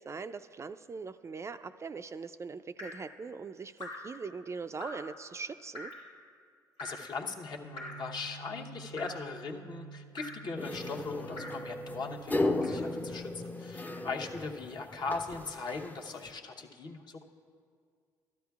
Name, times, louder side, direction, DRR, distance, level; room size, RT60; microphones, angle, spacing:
voice 1, 0.0-5.9, right 4 dB, 30° right, 11 dB, 0.3 m, -41 dB
Drip, 2.8-3.1 3.8-4.2 4.8-5.1 5.7-6.1 6.8-7.1 7.8-8.1 9.0-9.3 10.2-10.5 11.4-11.7 12.6-12.9 13.9-14.0, left 1 dB, 80° left, 1.3 m, -44 dB
voice 2, 6.8-17.2, left 4 dB, 50° left, 1 dB, 0.9 m, -39 dB
sound 1, 7.6-13.1, right 5 dB, 90° right, 0.8 m, -49 dB
sound 2, 10.6-16.3, left 2 dB, 15° left, 0.5 m, -35 dB
13.0 x 11.5 x 2.4 m, 2.1 s
hypercardioid pair, 60°, 9 cm